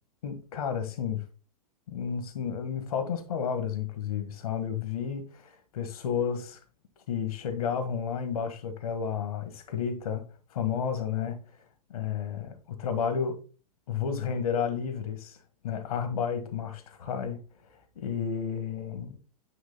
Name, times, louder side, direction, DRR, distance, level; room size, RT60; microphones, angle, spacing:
voice 1, 0.2-1.2 1.9-6.6 7.1-10.2 10.5-11.6 11.9-13.4 13.9-15.4 15.6-17.4 17.9-19.2, left 7 dB, 65° left, 1.5 m, -31 dB
9.4 x 3.2 x 3.9 m
hypercardioid pair, 105°, 20 cm